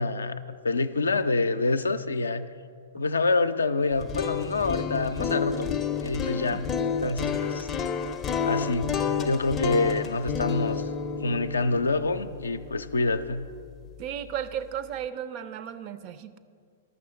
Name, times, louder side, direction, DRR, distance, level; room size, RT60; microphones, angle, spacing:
voice 1, 0.0-2.5 2.9-5.7 6.0-6.7 7.0-7.7 8.5-8.9 9.2-10.8 11.2-13.4, left 3 dB, 75° left, 10 dB, 0.4 m, -26 dB
sound 1, 3.9-13.9, left 6 dB, 20° left, 0.5 m, -30 dB
voice 2, 14.0-16.4, right 9 dB, 40° right, 12 dB, 0.5 m, -35 dB
12.0 x 6.8 x 6.3 m, 2.1 s
figure-of-eight pair, 105°, 0 cm